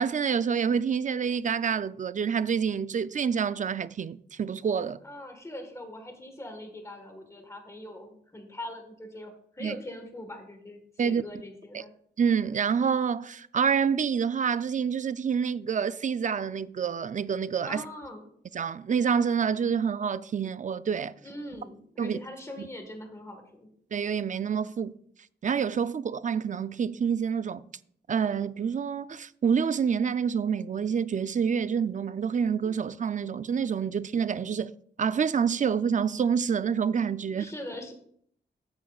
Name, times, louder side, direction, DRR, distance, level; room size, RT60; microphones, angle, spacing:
voice 1, 0.0-5.0 9.6-9.8 11.0-11.2 11.7-11.8 12.2-17.8 18.5-21.1 22.0-22.2 22.6-22.7 23.9-24.9 25.4-27.6 28.1-34.7 35.0-37.5, right 7 dB, 45° right, 0.4 m, -27 dB
voice 2, 5.0-11.9 17.7-18.3 21.2-23.7 37.3-37.9, left 1 dB, 15° left, 1.5 m, -42 dB
14.0 x 8.6 x 2.4 m
wide cardioid pair, 130°, 18 cm